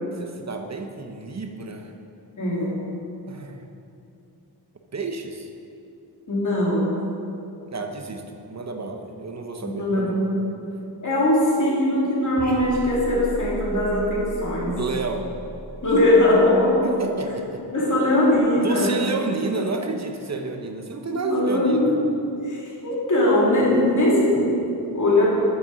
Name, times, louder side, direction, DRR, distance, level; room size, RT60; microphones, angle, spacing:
voice 1, 0.2-1.9 3.3-3.7 4.9-5.5 7.7-8.2 8.5-10.2 14.8-15.3 16.8-17.9 18.6-22.0, right 3 dB, 40° right, 4 dB, 0.9 m, -30 dB
voice 2, 2.4-2.8 6.3-7.0 9.6-10.4 11.0-14.8 15.8-16.8 17.7-19.0 21.1-22.2 22.4-25.3, left 1 dB, 50° left, -6 dB, 2.6 m, -20 dB
sound 1, 12.4-17.0, right 1 dB, 20° left, 1.6 m, -36 dB
8.6 x 7.0 x 6.2 m, 2.7 s
wide cardioid pair, 130°, 40 cm